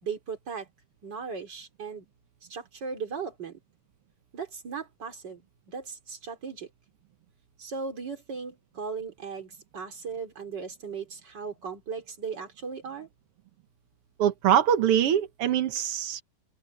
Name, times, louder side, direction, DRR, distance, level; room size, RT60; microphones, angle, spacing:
voice 1, 0.0-0.7 1.0-2.1 2.5-3.6 4.3-5.4 5.7-6.7 7.6-13.1, right 5 dB, 30° right, 3.4 m, -37 dB
voice 2, 14.2-16.2, right 10 dB, 70° right, 1.3 m, -23 dB
open air
omnidirectional pair, 4.1 m